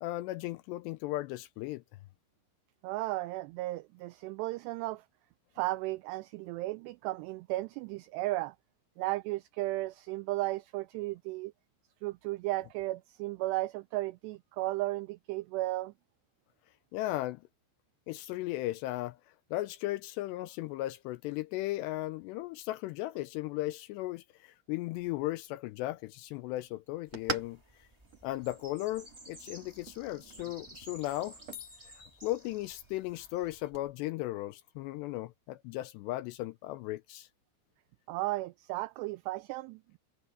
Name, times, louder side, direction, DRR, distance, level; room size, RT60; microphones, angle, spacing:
voice 1, 0.0-1.8 16.9-17.4 18.1-19.2 19.5-27.6 28.2-31.4 32.2-37.3, left 17 dB, 85° left, 2.5 m, -36 dB
voice 2, 2.8-5.0 5.6-8.5 9.0-11.5 12.0-15.9 38.1-40.0, right 19 dB, 85° right, 2.4 m, -35 dB
sound 1, 24.9-33.9, right 5 dB, 40° right, 3.2 m, -47 dB
sound 2, 27.1-33.7, right 1 dB, 15° right, 0.9 m, -54 dB
sound 3, 31.5-33.1, left 12 dB, 65° left, 4.6 m, -52 dB
omnidirectional pair, 5.4 m